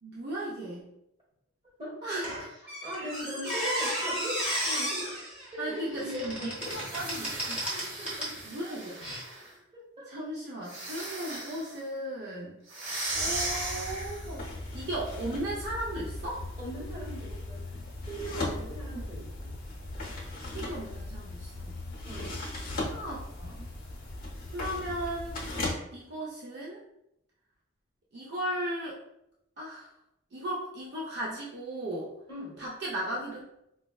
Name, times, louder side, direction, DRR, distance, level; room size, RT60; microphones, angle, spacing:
voice 1, 0.0-0.9 2.0-2.5 2.9-3.1 5.6-7.7 8.4-9.0 10.1-12.6 13.1-14.4 14.7-16.4 18.9-19.0 20.5-21.8 22.9-23.7 24.5-25.4 25.9-26.8 28.1-29.0 29.6-29.9 30.3-32.1 32.6-33.4, right 1 dB, 55° right, -5 dB, 0.5 m, -36 dB
voice 2, 1.8-2.2 2.8-5.2 5.5-6.8 7.7-8.3 9.7-10.1 16.6-17.6 18.0-19.5 22.0-22.3 32.3-32.5, equal, 25° right, -6 dB, 1.2 m, -39 dB
Squeak, 2.2-8.4 9.0-9.2, right 1 dB, 5° right, 0.9 m, -34 dB
sound 1, 6.6-9.5 10.6-11.8 12.7-14.4, right 2 dB, 80° right, 1.0 m, -37 dB
sound 2, 13.1-25.7, left 2 dB, 40° left, 0.7 m, -38 dB
4.4 x 2.1 x 2.3 m, 0.82 s
head